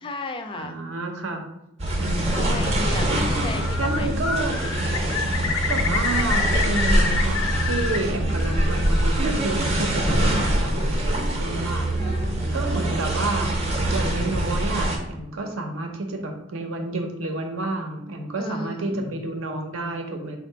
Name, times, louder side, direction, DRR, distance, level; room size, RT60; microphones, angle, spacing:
voice 1, 0.0-0.8 2.3-4.2 8.1-8.4 12.0-12.6 18.4-19.2, left 2 dB, 25° left, 6 dB, 0.3 m, -35 dB
voice 2, 0.5-1.4 2.0-2.7 3.1-4.6 5.7-11.9 12.5-13.5 13.9-20.4, right 2 dB, 75° right, 4 dB, 0.7 m, -30 dB
sound 1, 1.8-15.0, right 1 dB, 30° right, 0.6 m, -24 dB
Bird, 3.4-4.0 4.2-8.0 8.3-9.1, left 5 dB, 85° left, 0.5 m, -28 dB
3.7 x 2.5 x 4.5 m, 0.85 s
head